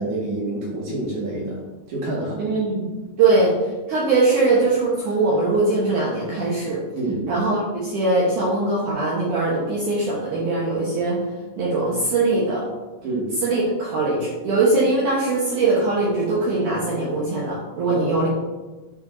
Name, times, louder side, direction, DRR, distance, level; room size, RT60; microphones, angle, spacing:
voice 1, 0.0-1.6 1.9-2.5 6.9-7.2 13.0-13.3 17.9-18.3, right 2 dB, 55° right, -4 dB, 2.4 m, -28 dB
voice 2, 2.4-3.5 3.9-6.8 7.3-11.2 11.6-12.6 13.4-18.3, right 3 dB, 90° right, -5 dB, 1.7 m, -21 dB
9.9 x 5.8 x 2.6 m, 1.2 s
omnidirectional pair, 5.2 m